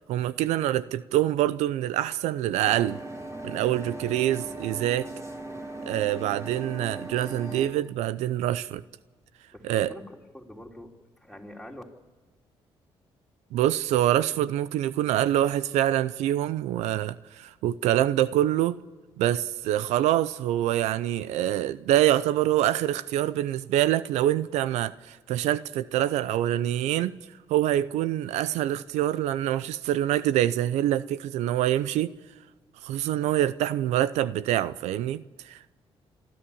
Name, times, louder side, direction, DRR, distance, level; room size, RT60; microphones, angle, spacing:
voice 1, 0.1-3.0 3.4-5.1 5.9-8.8 9.6-9.9 13.5-18.8 19.2-27.1 27.5-32.1 32.8-35.7, right 13 dB, 90° right, 0.5 m, -25 dB
sound 1, 2.6-7.7, right 2 dB, 25° right, 3.9 m, -38 dB
voice 2, 6.3-6.7 9.5-10.9 11.2-11.8, left 1 dB, ahead, 3.6 m, -45 dB
27.0 x 11.5 x 8.6 m
supercardioid pair, 65°, 11 cm